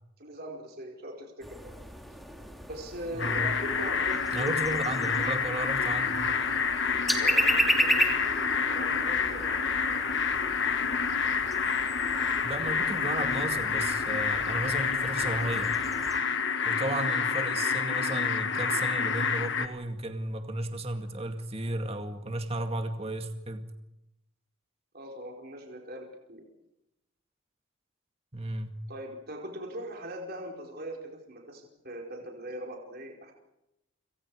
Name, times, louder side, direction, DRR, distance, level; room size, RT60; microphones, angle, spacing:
voice 1, 0.2-1.7 2.7-4.6 7.1-9.9 24.9-26.5 28.9-33.3, right 1 dB, 45° right, 1 dB, 4.7 m, -41 dB
sound 1, 1.4-16.2, equal, ahead, 3.0 m, -34 dB
voice 2, 3.1-3.5 4.3-6.2 12.4-15.7 16.6-23.6 28.3-28.8, right 2 dB, 30° right, 6 dB, 2.1 m, -34 dB
sound 2, 3.2-19.7, left 6 dB, 55° left, 1.8 m, -28 dB
30.0 x 27.0 x 4.9 m, 0.90 s
head